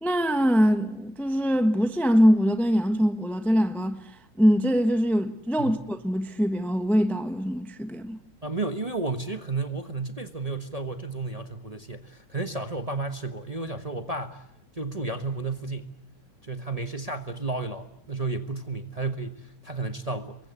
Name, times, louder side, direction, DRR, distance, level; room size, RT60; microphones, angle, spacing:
voice 1, 0.0-4.0 4.4-8.2, equal, ahead, 0.9 m, -23 dB
voice 2, 8.4-14.4 14.8-15.9 16.5-20.4, right 3 dB, 20° right, 1.1 m, -32 dB
28.5 x 23.0 x 8.2 m
omnidirectional pair, 2.3 m